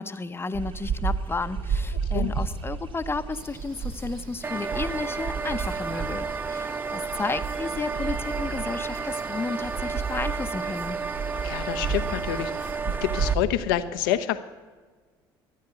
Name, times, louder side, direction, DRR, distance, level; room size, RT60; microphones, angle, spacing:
voice 1, 0.0-11.0, left 3 dB, 20° left, 11 dB, 0.9 m, -32 dB
sound 1, 0.5-13.5, right 5 dB, 50° right, 1.4 m, -32 dB
sound 2, 3.3-12.8, right 2 dB, 85° right, 2.6 m, -48 dB
sound 3, 4.4-13.3, right 5 dB, 15° right, 0.4 m, -32 dB
voice 2, 11.4-14.4, left 12 dB, 75° left, 11 dB, 0.9 m, -28 dB
13.5 x 9.5 x 8.9 m, 1.4 s
hypercardioid pair, 60°, 12 cm